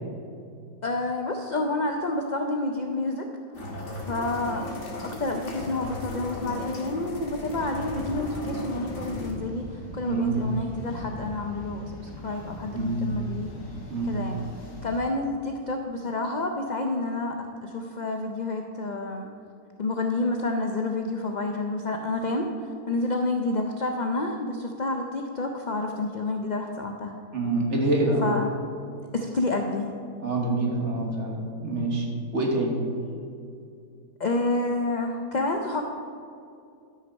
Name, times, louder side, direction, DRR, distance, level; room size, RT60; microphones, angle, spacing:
voice 1, 0.8-3.3 3.9-4.7 4.9-13.5 14.0-14.5 14.8-17.4 17.6-19.3 19.8-27.2 28.2-28.5 29.1-29.9 34.2-35.8, left 2 dB, 65° left, 3 dB, 0.4 m, -29 dB
sound 1, 3.5-9.3, left 1 dB, 40° left, 1.5 m, -36 dB
sound 2, 7.3-15.0, equal, 85° left, 2.1 m, -41 dB
voice 2, 10.0-10.4 12.7-13.1 13.9-14.2 27.3-28.2 30.2-32.1 32.3-32.8, right 2 dB, 50° right, 0 dB, 1.7 m, -26 dB
11.5 x 6.2 x 5.3 m, 2.5 s
omnidirectional pair, 1.6 m